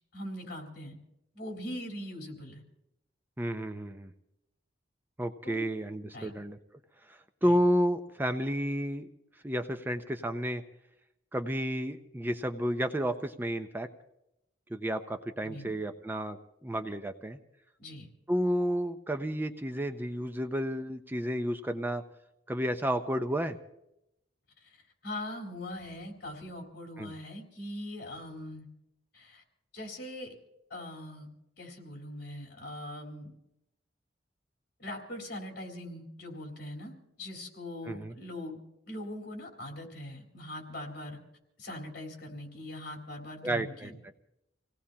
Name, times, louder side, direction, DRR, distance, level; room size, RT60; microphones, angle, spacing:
voice 1, 0.1-1.0 1.3-2.6 5.4-5.7 6.1-6.3 7.4-7.5 15.4-15.7 17.8-18.1 24.6-24.8 25.0-28.7 29.1-29.4 29.7-30.3 30.7-31.3 31.6-33.4 34.8-38.6 38.9-41.2 41.6-43.9, left 1 dB, 60° left, 1 dB, 4.0 m, -41 dB
voice 2, 3.4-4.1 5.2-6.6 7.0-9.1 9.4-10.6 11.3-13.9 14.7-17.4 18.3-22.0 22.5-23.6 27.0-27.1 37.9-38.1 43.4-44.1, equal, 10° right, 7 dB, 0.5 m, -31 dB
27.5 x 18.0 x 2.9 m, 0.84 s
head